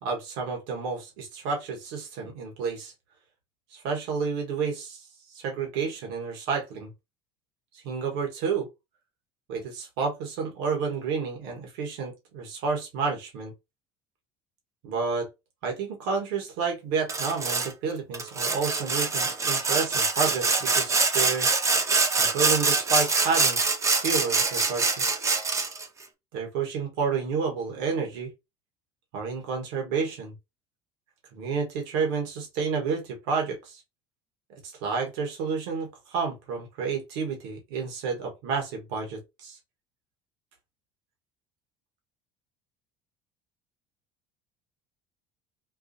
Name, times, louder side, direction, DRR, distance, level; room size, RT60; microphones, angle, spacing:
voice 1, 0.0-2.9 3.7-5.0 5.3-6.9 7.8-8.7 9.5-13.5 14.8-15.3 15.6-21.5 22.2-23.6 24.0-25.1 26.3-28.3 29.1-30.3 31.3-33.8 34.6-39.6, right 5 dB, 80° right, 1.4 m, -30 dB
Sawing, 17.1-17.7 18.1-25.8, right 4 dB, 25° right, 0.9 m, -24 dB
4.6 x 2.4 x 2.7 m
supercardioid pair, 95°, 12 cm